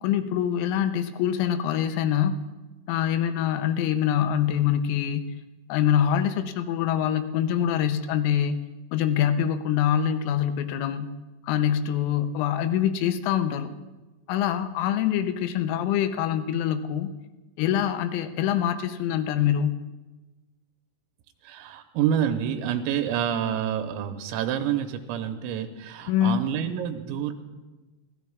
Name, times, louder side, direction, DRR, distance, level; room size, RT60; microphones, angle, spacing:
voice 1, 0.0-2.4 2.9-5.3 5.7-8.6 8.9-11.1 11.4-13.7 14.3-17.1 17.6-19.8 26.1-26.4, left 9 dB, 80° left, 9 dB, 3.1 m, -24 dB
voice 2, 21.5-27.3, right 9 dB, 90° right, 6 dB, 3.5 m, -28 dB
25.0 x 17.5 x 2.4 m, 1.2 s
omnidirectional pair, 6.0 m